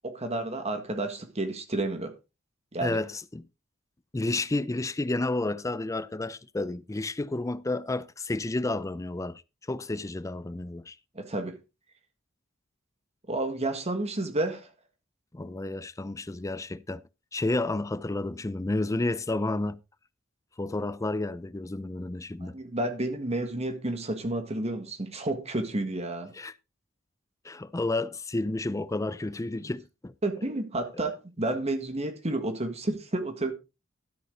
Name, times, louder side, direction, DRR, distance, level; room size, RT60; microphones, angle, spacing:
voice 1, 0.0-2.1 2.7-3.0 11.1-11.6 13.3-14.7 22.4-26.3 30.2-33.5, right 2 dB, 35° right, 1.7 m, -31 dB
voice 2, 2.8-3.5 4.1-9.4 9.7-11.0 15.3-17.0 17.3-19.8 20.6-22.6 26.3-26.5 27.4-30.1, left 2 dB, 15° left, 0.4 m, -31 dB
13.0 x 8.5 x 3.8 m
head